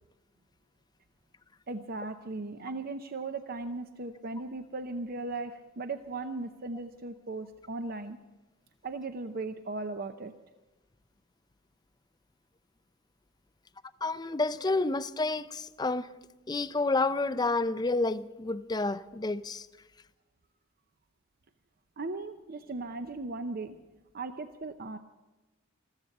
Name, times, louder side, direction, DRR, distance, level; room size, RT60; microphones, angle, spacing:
voice 1, 1.7-8.2 8.8-10.3 22.0-23.8 24.1-25.0, right 3 dB, 45° right, 0.6 m, -37 dB
voice 2, 14.0-16.1 16.5-19.7, left 3 dB, 20° left, 0.5 m, -29 dB
14.5 x 14.0 x 6.6 m
head